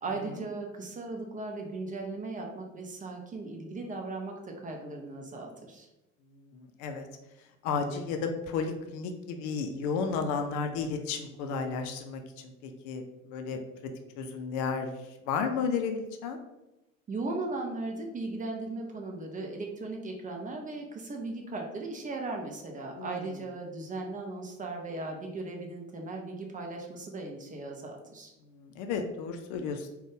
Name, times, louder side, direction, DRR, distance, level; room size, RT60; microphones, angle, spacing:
voice 1, 0.0-5.9 17.1-28.3, right 3 dB, 20° right, 1 dB, 0.5 m, -37 dB
voice 2, 6.3-7.1 7.4-13.6 14.2-16.4 23.0-23.3 28.4-29.9, left 5 dB, 45° left, 5 dB, 0.5 m, -33 dB
3.8 x 2.3 x 3.4 m, 0.96 s
figure-of-eight pair, 65°, 40 cm